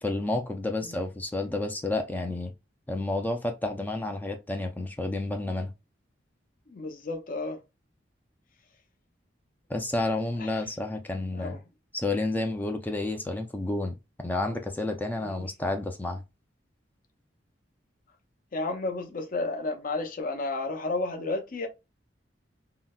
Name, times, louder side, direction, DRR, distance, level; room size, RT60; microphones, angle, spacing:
voice 1, 0.0-2.5 2.9-5.7 9.7-11.6 11.9-16.2, left 2 dB, 10° left, 0.4 m, -30 dB
voice 2, 6.7-7.6 10.4-10.5 11.3-11.6 15.2-15.3 18.5-21.7, left 2 dB, 50° left, 0.6 m, -32 dB
3.8 x 2.1 x 2.3 m
head